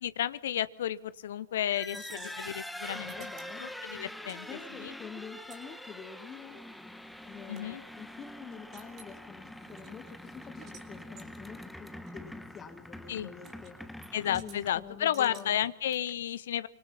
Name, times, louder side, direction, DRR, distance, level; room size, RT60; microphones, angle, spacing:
voice 1, 0.0-3.3 3.6-4.5 4.8-4.9 7.5-7.8 13.1-13.3 14.1-16.7, left 11 dB, 60° left, 16 dB, 0.8 m, -32 dB
sound 1, 1.6-15.0, left 1 dB, ahead, 1.3 m, -45 dB
voice 2, 1.9-2.3 2.9-3.6 4.5-6.6 7.2-13.8 14.3-15.6, left 6 dB, 25° left, 8 dB, 1.7 m, -47 dB
sound 2, 1.9-4.4 4.7-7.7 8.1-8.2 8.5-9.1 9.6-10.9 11.2-11.3 12.1-12.2 13.4-13.7 14.0-14.6 15.1-16.1, right 6 dB, 30° right, 4.1 m, -55 dB
25.5 x 25.0 x 5.8 m, 0.83 s
figure-of-eight pair, 90°, 0 cm